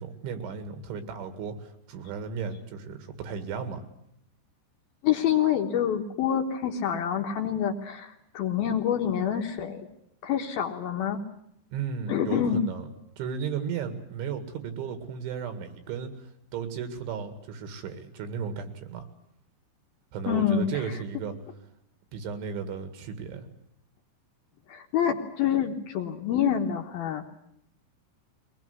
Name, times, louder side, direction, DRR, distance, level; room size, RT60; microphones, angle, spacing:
voice 1, 0.0-3.8 11.7-12.9 13.2-16.1 16.5-19.1 20.1-21.4 22.1-23.5, right 6 dB, 80° right, 9 dB, 4.4 m, -34 dB
voice 2, 5.0-9.9 10.2-11.2 12.1-12.6 20.3-20.7 24.7-27.3, left 9 dB, 65° left, 3 dB, 2.6 m, -27 dB
22.5 x 19.5 x 9.5 m, 0.75 s
omnidirectional pair, 5.4 m